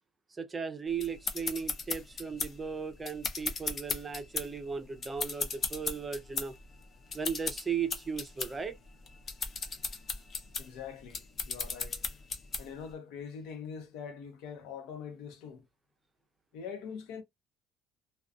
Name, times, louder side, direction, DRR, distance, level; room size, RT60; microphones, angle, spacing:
voice 1, 0.3-6.5 7.1-8.8, right 6 dB, 20° right, 0.5 m, -36 dB
sound 1, 1.0-12.9, left 4 dB, 35° left, 0.6 m, -37 dB
voice 2, 10.6-12.0 12.6-15.6 16.5-17.2, left 6 dB, 90° left, 0.8 m, -43 dB
2.4 x 2.2 x 2.4 m
cardioid pair, 135°, 0 cm